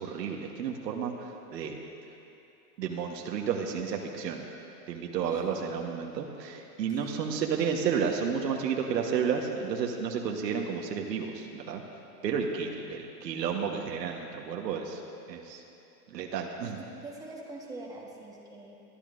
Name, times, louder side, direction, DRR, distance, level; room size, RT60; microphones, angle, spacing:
voice 1, 0.0-1.8 2.8-4.5 4.9-11.8 12.2-15.0 15.3-15.6 16.1-16.8, right 6 dB, 85° right, 2 dB, 1.3 m, -32 dB
voice 2, 6.9-7.2 7.5-7.8 16.6-18.7, right 2 dB, 5° right, -1 dB, 1.2 m, -45 dB
22.5 x 12.0 x 2.6 m, 2.8 s
hypercardioid pair, 145°, 49 cm